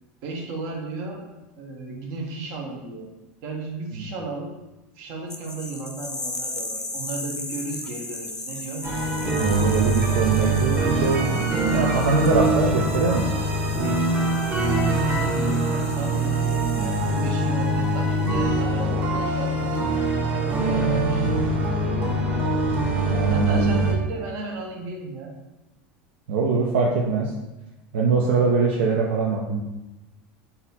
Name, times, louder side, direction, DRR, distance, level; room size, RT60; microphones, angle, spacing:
voice 1, 0.2-1.2 1.6-3.1 3.4-4.5 5.0-8.8 14.2-14.3 14.6-19.9 20.3-21.3 21.6-22.2 23.1-25.3, right 3 dB, 65° right, 1 dB, 1.1 m, -34 dB
sound 1, 5.3-17.6, left 2 dB, 10° left, 0.5 m, -37 dB
sound 2, 8.8-23.9, right 2 dB, 35° right, 1.3 m, -23 dB
voice 2, 9.4-13.3 23.1-23.9 26.3-27.3 27.9-29.6, right 4 dB, 85° right, -2 dB, 0.6 m, -23 dB
4.0 x 2.8 x 4.1 m, 1.0 s
supercardioid pair, 115°, 6 cm